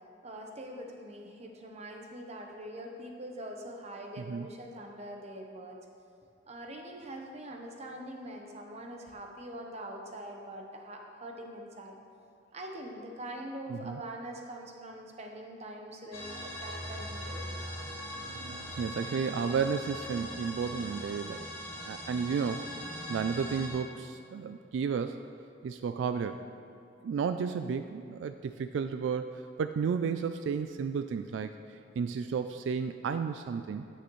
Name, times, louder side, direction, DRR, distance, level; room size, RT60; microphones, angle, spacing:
voice 1, 0.2-5.8 6.5-12.0 12.5-17.7, right 1 dB, 35° right, 2 dB, 0.9 m, -43 dB
voice 2, 4.2-4.5 13.7-14.0 18.3-21.5 21.8-22.6 23.1-25.1 25.6-26.4 27.0-33.9, right 6 dB, 80° right, 9 dB, 0.3 m, -33 dB
sound 1, 16.1-23.7, equal, 35° left, 2.2 m, -41 dB
9.7 x 9.2 x 3.1 m, 2.5 s
head